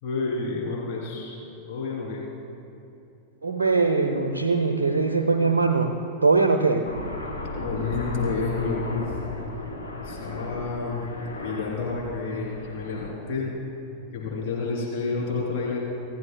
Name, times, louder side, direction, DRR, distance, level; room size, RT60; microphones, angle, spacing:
voice 1, 0.0-2.2 7.5-9.2 10.0-11.0 11.4-13.5 14.1-15.8, left 4 dB, 45° left, -5 dB, 3.2 m, -30 dB
voice 2, 3.4-6.9, right 4 dB, 70° right, 5 dB, 0.7 m, -22 dB
Aircraft, 6.8-13.1, left 2 dB, 90° left, 2.1 m, -35 dB
26.5 x 14.5 x 2.3 m, 2.7 s
figure-of-eight pair, 90°, 0 cm